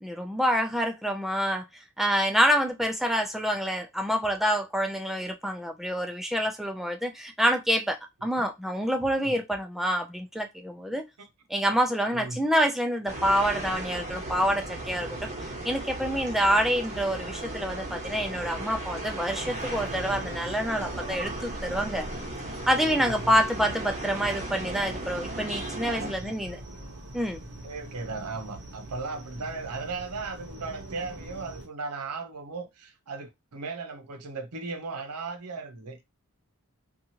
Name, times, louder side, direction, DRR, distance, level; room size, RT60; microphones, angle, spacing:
voice 1, 0.0-1.7 2.0-11.0 11.5-22.1 22.7-26.6 27.1-27.4, equal, ahead, 0.3 m, -27 dB
voice 2, 12.1-12.4 23.1-23.3 25.9-26.3 27.6-36.0, right 3 dB, 85° right, 0.7 m, -37 dB
sound 1, 13.1-26.1, right 2 dB, 30° right, 1.0 m, -36 dB
sound 2, 19.4-31.7, right 1 dB, 55° right, 0.8 m, -43 dB
2.8 x 2.4 x 2.8 m
head